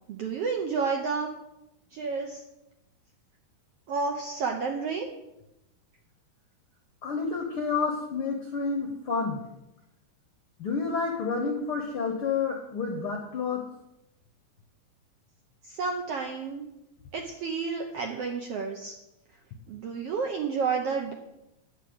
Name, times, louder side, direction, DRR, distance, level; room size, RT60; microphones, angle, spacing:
voice 1, 0.1-1.3 1.9-2.4 3.9-5.1 15.6-16.7 17.1-18.9 19.7-21.1, right 5 dB, 75° right, 2 dB, 1.4 m, -30 dB
voice 2, 7.0-9.4 10.6-13.7, left 4 dB, 70° left, 3 dB, 1.3 m, -29 dB
9.8 x 7.3 x 7.9 m, 0.91 s
omnidirectional pair, 3.9 m